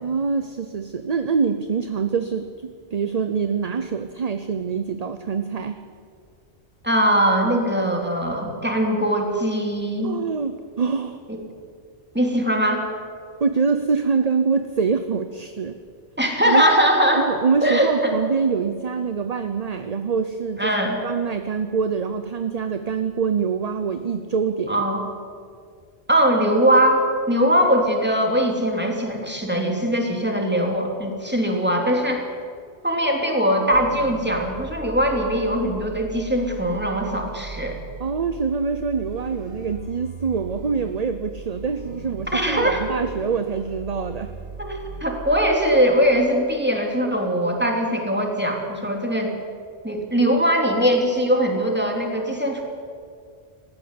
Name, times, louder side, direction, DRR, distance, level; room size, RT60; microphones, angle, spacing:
voice 1, 0.0-5.8 10.0-11.2 13.4-15.8 16.4-16.6 17.1-20.7 21.0-24.9 38.0-44.3, right 5 dB, 40° right, 9 dB, 0.8 m, -25 dB
voice 2, 6.8-10.2 11.3-11.4 12.1-12.8 16.2-17.3 17.6-18.2 20.6-21.0 24.7-25.0 26.1-32.2 32.8-37.8 42.3-42.9 44.6-49.3 49.8-52.6, equal, 10° right, 1 dB, 2.9 m, -21 dB
sound 1, 33.7-45.6, right 4 dB, 60° right, 2.5 m, -38 dB
18.5 x 14.5 x 9.7 m, 2.2 s
omnidirectional pair, 1.1 m